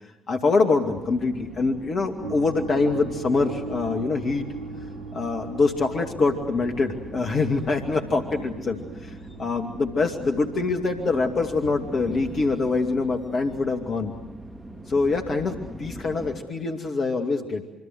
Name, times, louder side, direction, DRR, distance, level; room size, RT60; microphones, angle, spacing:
voice 1, 0.3-4.5 5.1-14.1 14.9-17.6, left 3 dB, 50° left, 3 dB, 2.4 m, -24 dB
sound 1, 0.9-16.4, right 1 dB, 15° right, 3.5 m, -41 dB
sound 2, 2.2-15.9, right 4 dB, 85° right, 1.3 m, -41 dB
26.5 x 25.0 x 8.0 m, 0.93 s
figure-of-eight pair, 45°, 0 cm